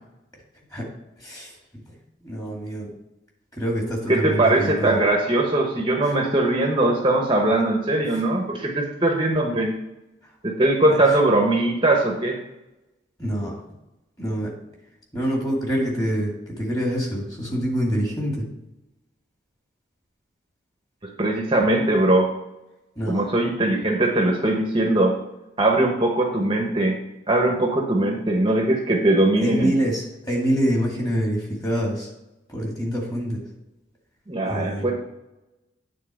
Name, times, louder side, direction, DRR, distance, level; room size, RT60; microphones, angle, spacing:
voice 1, 1.2-1.6 2.2-2.9 3.5-5.0 6.0-6.1 10.9-11.2 13.2-13.6 14.2-14.5 15.1-18.5 23.0-23.3 29.4-32.1 32.5-33.4 34.5-34.9, equal, 20° left, -2 dB, 2.2 m, -26 dB
voice 2, 4.1-9.8 10.4-12.4 21.0-22.3 23.1-25.1 25.6-27.0 27.3-29.7 34.3-34.9, right 2 dB, 25° right, 1 dB, 0.9 m, -20 dB
9.3 x 4.0 x 6.4 m, 0.95 s
head